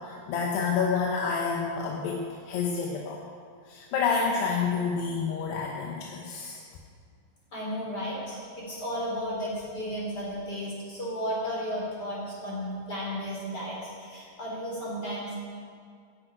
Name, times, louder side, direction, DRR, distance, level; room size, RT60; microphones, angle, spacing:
voice 1, 0.0-3.2 3.7-6.6, left 5 dB, 85° left, -1 dB, 3.2 m, -29 dB
voice 2, 7.5-15.4, equal, 25° left, -5 dB, 4.2 m, -34 dB
10.5 x 10.0 x 9.0 m, 2.2 s
omnidirectional pair, 4.7 m